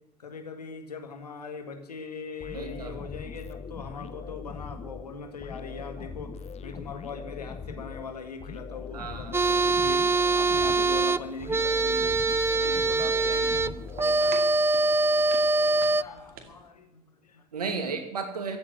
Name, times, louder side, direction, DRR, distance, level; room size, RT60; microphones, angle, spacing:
voice 1, 0.2-6.4 6.6-12.2 12.5-14.4 15.6-17.5, left 4 dB, 85° left, 6 dB, 1.8 m, -41 dB
sound 1, 2.4-14.6, left 5 dB, 35° left, 1.2 m, -41 dB
voice 2, 2.5-2.9 8.9-9.5 17.5-18.6, right 4 dB, 80° right, 6 dB, 2.2 m, -33 dB
sound 2, 9.3-16.0, right 3 dB, 10° right, 0.6 m, -24 dB
sound 3, 11.5-16.7, right 6 dB, 50° right, 2.4 m, -48 dB
15.0 x 8.4 x 9.7 m, 0.86 s
figure-of-eight pair, 60°, 20 cm